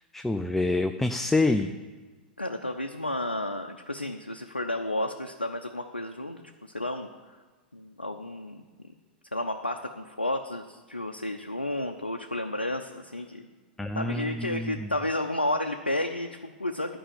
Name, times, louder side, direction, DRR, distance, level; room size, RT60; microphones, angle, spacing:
voice 1, 0.1-1.7 13.8-14.7, left 2 dB, 5° left, 8 dB, 0.4 m, -26 dB
voice 2, 2.4-6.4 6.7-7.1 7.7-8.6 9.3-13.4 13.9-17.0, left 1 dB, 90° left, 4 dB, 0.6 m, -32 dB
11.0 x 5.5 x 8.5 m, 1.4 s
figure-of-eight pair, 100°, 5 cm